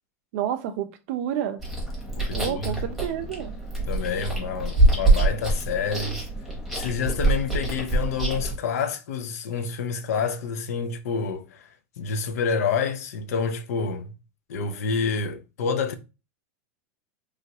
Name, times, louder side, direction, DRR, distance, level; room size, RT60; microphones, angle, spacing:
voice 1, 0.3-1.6 2.3-3.5, right 10 dB, 55° right, 0.5 m, -29 dB
Chewing mastication, 1.6-8.6, right 2 dB, ahead, 0.9 m, -25 dB
voice 2, 2.2-2.6 3.9-6.2 6.7-11.7 12.0-14.1 14.5-16.0, left 5 dB, 85° left, 0.6 m, -28 dB
3.2 x 2.4 x 2.7 m
supercardioid pair, 155°, 8 cm